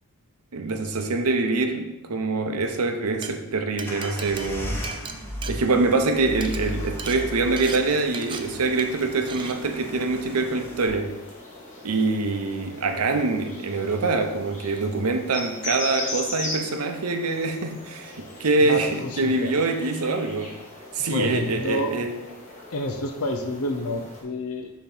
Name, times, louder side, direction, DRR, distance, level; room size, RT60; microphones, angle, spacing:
voice 1, 0.5-4.8 5.5-11.2 11.8-20.6 20.9-22.2, right 3 dB, 80° right, 0.7 m, -25 dB
Glass, 3.0-3.3 3.8-6.1 6.3-6.6 7.0-7.2 7.6-7.8 8.1-8.4 8.8-9.0 9.3-9.5, right 5 dB, 20° right, 0.4 m, -36 dB
sound 1, 3.9-10.9, equal, 10° left, 0.9 m, -36 dB
sound 2, 6.3-24.2, left 1 dB, 35° left, 1.5 m, -39 dB
voice 2, 18.6-19.5 21.1-21.9 22.7-24.7, left 2 dB, 70° left, 0.6 m, -29 dB
6.9 x 3.0 x 5.4 m
head